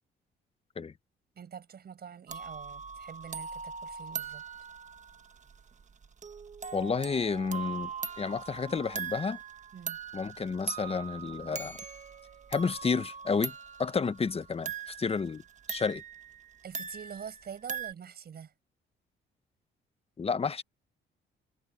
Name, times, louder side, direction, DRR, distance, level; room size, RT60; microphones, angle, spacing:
voice 1, 1.4-4.4 9.7-10.0 16.6-18.5, right 7 dB, 55° right, 5.3 m, -45 dB
sound 1, 2.3-17.9, right 6 dB, 35° right, 1.4 m, -41 dB
voice 2, 6.7-7.9 8.2-9.4 10.1-11.8 12.5-15.4 15.7-16.0 20.2-20.6, left 5 dB, 30° left, 0.9 m, -31 dB
cardioid pair, 90°, 20 cm